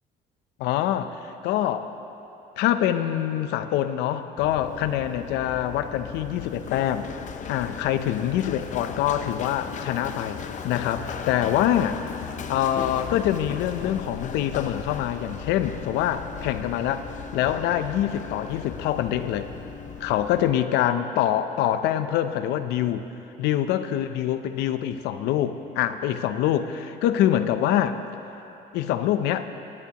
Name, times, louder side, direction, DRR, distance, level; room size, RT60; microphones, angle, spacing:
voice 1, 0.6-1.9 2.6-7.1 7.5-10.4 10.6-17.1 17.3-19.5 20.0-23.1 23.4-28.0 28.7-29.5, left 11 dB, 90° left, 10 dB, 0.6 m, -25 dB
Run, 4.4-20.5, left 6 dB, 45° left, 0.6 m, -37 dB
20.5 x 10.5 x 2.9 m, 2.9 s
cardioid pair, 110°, 17 cm